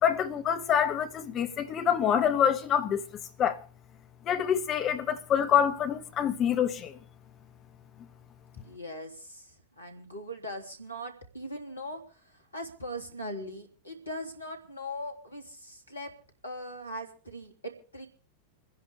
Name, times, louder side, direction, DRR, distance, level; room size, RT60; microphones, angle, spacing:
voice 1, 0.0-3.0 3.4-3.6 4.3-7.0, left 8 dB, 30° left, 1.4 m, -26 dB
voice 2, 8.6-16.1 16.4-18.1, equal, 80° left, 2.7 m, -40 dB
28.5 x 10.5 x 3.4 m
figure-of-eight pair, 90°, 0 cm